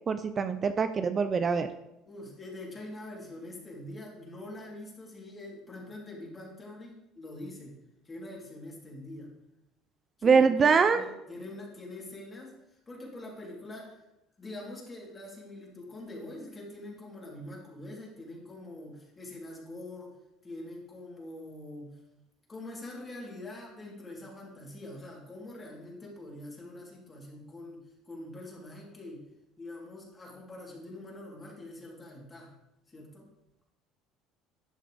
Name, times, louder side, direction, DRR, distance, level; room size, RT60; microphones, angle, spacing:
voice 1, 0.1-1.7 10.2-11.0, right 5 dB, 35° right, 10 dB, 0.5 m, -23 dB
voice 2, 2.1-7.7 8.0-9.3 10.2-14.0 14.4-20.1 20.4-22.0 22.5-29.2 29.6-32.5 32.9-33.3, left 1 dB, 25° left, -3 dB, 3.6 m, -44 dB
11.5 x 7.5 x 3.5 m, 0.90 s
supercardioid pair, 90°, 0 cm